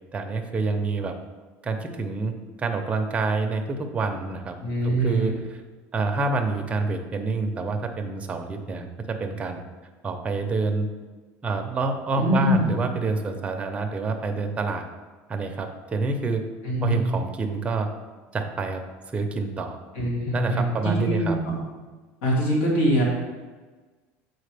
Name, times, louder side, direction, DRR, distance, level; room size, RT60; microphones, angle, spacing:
voice 1, 0.1-1.1 1.6-4.5 4.8-5.4 5.9-9.6 10.0-10.9 11.4-14.8 15.3-16.5 16.8-17.9 18.3-18.8 19.1-19.8 20.3-21.4, right 3 dB, 20° right, 4 dB, 0.6 m, -27 dB
voice 2, 4.6-5.4 12.2-12.8 16.6-17.2 19.9-21.6 22.2-23.0, right 1 dB, 75° left, -4 dB, 2.0 m, -23 dB
7.4 x 4.5 x 3.4 m, 1.3 s
cardioid pair, 140°, 6 cm